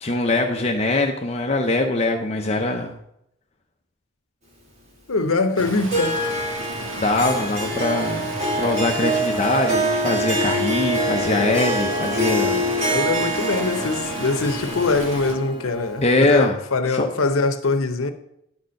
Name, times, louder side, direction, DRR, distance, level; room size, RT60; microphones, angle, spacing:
voice 1, 0.0-3.0 7.0-12.7 16.0-16.6 16.9-17.1, left 2 dB, 30° left, 0.6 m, -22 dB
voice 2, 5.1-6.2 12.8-18.1, left 3 dB, 85° left, 0.9 m, -23 dB
Stream, 5.6-15.3, right 1 dB, 65° right, 1.7 m, -34 dB
Harp, 5.9-16.5, equal, 35° right, 2.1 m, -25 dB
10.5 x 4.3 x 6.4 m
head